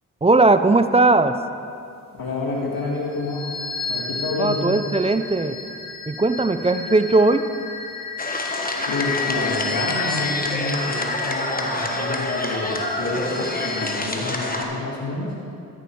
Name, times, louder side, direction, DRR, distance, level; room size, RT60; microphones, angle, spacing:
voice 1, 0.2-1.4 4.4-5.6 6.1-7.5, right 2 dB, 20° right, 10 dB, 0.5 m, -18 dB
voice 2, 2.1-3.6 3.9-4.8 8.8-15.3, left 2 dB, 80° left, -2 dB, 2.0 m, -28 dB
sound 1, 2.8-14.0, left 4 dB, 50° left, 1.2 m, -32 dB
sound 2, 8.2-14.6, left 1 dB, 25° left, 1.3 m, -27 dB
13.0 x 7.2 x 4.6 m, 2.5 s
cardioid pair, 45°, 35 cm